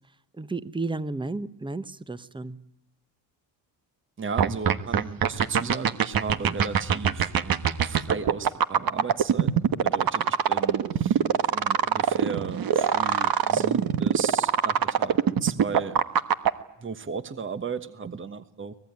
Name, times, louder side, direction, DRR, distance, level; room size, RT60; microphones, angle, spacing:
voice 1, 0.4-2.6, right 3 dB, 10° right, 15 dB, 1.0 m, -32 dB
voice 2, 4.2-9.5 9.8-16.0 16.8-18.7, right 5 dB, 30° right, 11 dB, 1.3 m, -35 dB
sound 1, 4.4-16.5, right 8 dB, 55° right, 1.4 m, -22 dB
24.0 x 19.5 x 9.5 m, 0.84 s
cardioid pair, 85°, 42 cm